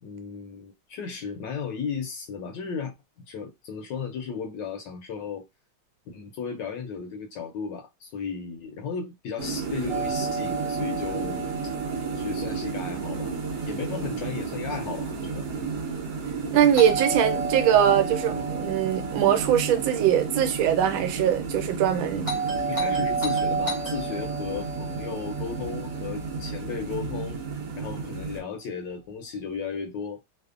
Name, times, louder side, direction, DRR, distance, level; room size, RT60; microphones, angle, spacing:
voice 1, 0.0-2.9 3.3-5.4 6.1-11.4 12.1-13.3 13.7-15.5 22.2-27.4 27.8-30.2, left 6 dB, 70° left, 1.2 m, -35 dB
sound 1, 9.4-28.4, right 5 dB, 60° right, 0.9 m, -32 dB
Doorbell, 9.9-13.9 16.7-21.0 22.2-26.7, right 4 dB, 25° right, 0.9 m, -32 dB
voice 2, 16.5-22.3, right 9 dB, 80° right, 1.3 m, -22 dB
3.3 x 2.0 x 2.4 m
omnidirectional pair, 2.2 m